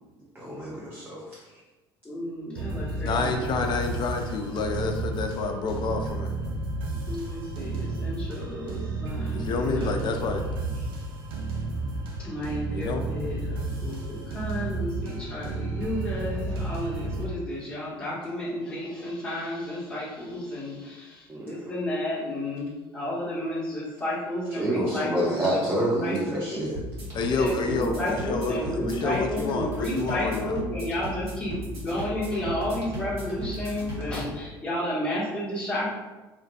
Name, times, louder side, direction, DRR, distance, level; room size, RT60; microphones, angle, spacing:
voice 1, 0.3-1.4 21.3-21.5 24.5-26.8, right 1 dB, 15° right, -6 dB, 0.5 m, -28 dB
voice 2, 2.0-3.6 7.1-10.2 12.2-26.6 27.3-35.9, left 1 dB, 10° left, -12 dB, 0.9 m, -32 dB
sound 1, 2.5-17.3, right 2 dB, 70° right, 0.5 m, -32 dB
voice 3, 3.0-6.3 9.3-10.4 12.7-13.0 27.1-30.6, left 4 dB, 40° left, 4 dB, 0.3 m, -29 dB
sound 2, 26.7-34.4, equal, 55° right, 1.0 m, -36 dB
2.5 x 2.2 x 2.3 m, 1.2 s
figure-of-eight pair, 60°, 12 cm